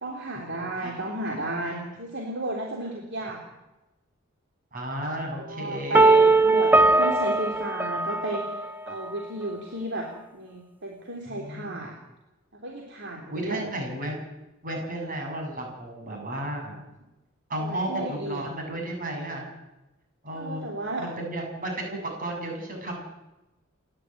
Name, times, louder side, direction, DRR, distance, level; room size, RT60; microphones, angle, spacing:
voice 1, 0.0-3.4 5.1-8.5 8.9-10.1 10.3-11.9 12.6-13.7 17.6-18.4 20.3-21.1, right 1 dB, 60° right, 0 dB, 3.4 m, -33 dB
voice 2, 4.7-6.2 11.3-11.9 13.3-14.2 14.6-16.8 17.5-19.4 20.2-20.7 21.0-23.0, right 1 dB, 45° right, 1 dB, 7.7 m, -33 dB
sound 1, 5.9-8.9, right 2 dB, 10° right, 0.7 m, -20 dB
29.0 x 11.5 x 9.3 m, 1.0 s
head